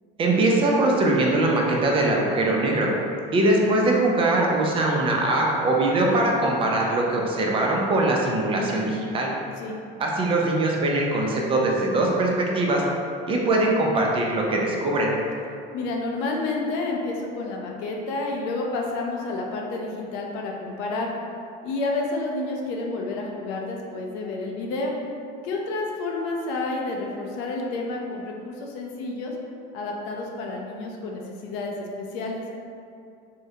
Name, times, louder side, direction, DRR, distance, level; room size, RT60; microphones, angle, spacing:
voice 1, 0.2-2.9 3.3-9.3 10.0-12.8 13.3-15.1, right 2 dB, 30° right, -1 dB, 0.4 m, -22 dB
voice 2, 15.7-21.1 21.6-25.0 25.4-29.3 29.7-32.4, left 2 dB, 70° left, 0 dB, 0.5 m, -30 dB
3.6 x 2.1 x 2.7 m, 2.5 s
cardioid pair, 135°, 19 cm